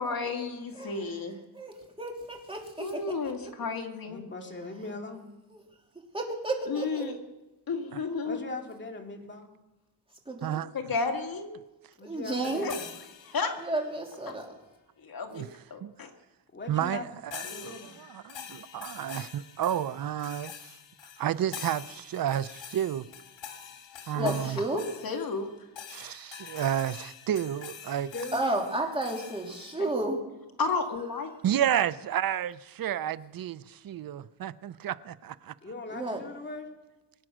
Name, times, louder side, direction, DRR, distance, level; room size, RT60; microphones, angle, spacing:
voice 1, 0.0-1.4 2.8-4.2 6.7-7.1 7.7-8.4 10.7-11.5 12.6-12.7 13.2-13.6 14.3-14.4 15.0-15.4 15.7-16.1 17.5-17.7 24.2-24.3 25.0-25.5 29.8-29.9 30.6-31.3, left 4 dB, 50° left, 2.2 m, -32 dB
voice 2, 1.5-3.1 3.4-3.5 5.5-5.6 6.1-7.1 10.3-10.6 12.0-12.7 13.6-14.5 24.1-24.8 28.3-30.2 35.9-36.2, right 2 dB, 10° right, 2.9 m, -32 dB
voice 3, 4.1-5.3 8.2-9.5 12.0-12.9 16.5-17.0 17.5-17.9 24.0-24.4 28.1-28.4 35.6-36.8, left 3 dB, 25° left, 2.4 m, -40 dB
sound 1, 12.4-14.0 17.3-29.9, left 8 dB, 85° left, 2.1 m, -45 dB
voice 4, 16.7-20.7 21.2-23.1 24.1-24.6 25.9-28.1 31.4-35.5, right 10 dB, 50° right, 0.6 m, -31 dB
23.0 x 8.9 x 6.2 m
cardioid pair, 130°, 44 cm